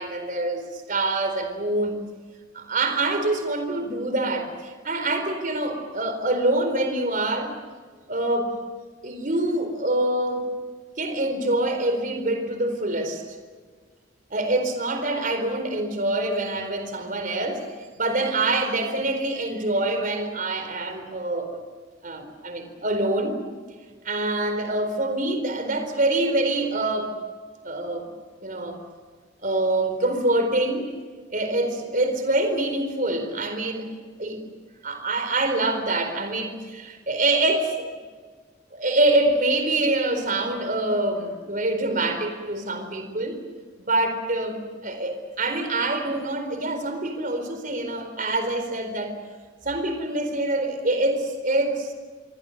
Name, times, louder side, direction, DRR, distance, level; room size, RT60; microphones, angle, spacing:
voice 1, 0.0-2.0 2.5-7.5 8.1-8.5 9.0-10.4 11.0-13.2 14.3-17.6 18.0-21.6 22.0-23.4 24.0-27.2 27.6-28.1 28.4-28.8 29.4-30.9 31.3-33.9 34.2-34.4 34.8-37.8 38.7-43.4 43.8-49.1 49.6-51.9, right 2 dB, 45° right, 7 dB, 4.2 m, -25 dB
28.0 x 23.5 x 6.6 m, 1.5 s
head